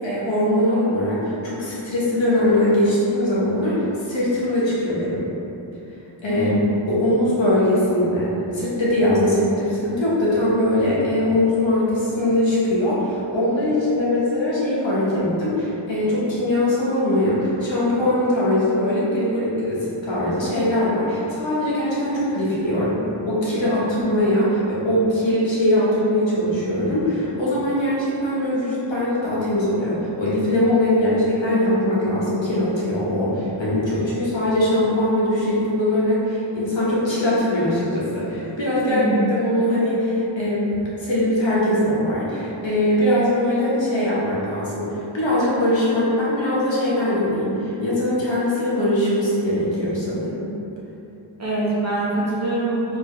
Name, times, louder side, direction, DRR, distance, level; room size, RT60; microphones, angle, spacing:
voice 1, 0.0-5.3 6.2-6.5 6.9-40.7 41.0-44.9 45.1-50.5, left 1 dB, 70° left, -8 dB, 1.2 m, -21 dB
voice 2, 6.3-6.6 38.9-39.2 51.4-53.0, right 2 dB, 35° right, -7 dB, 1.2 m, -24 dB
4.4 x 2.7 x 3.1 m, 2.9 s
cardioid pair, 45°, 47 cm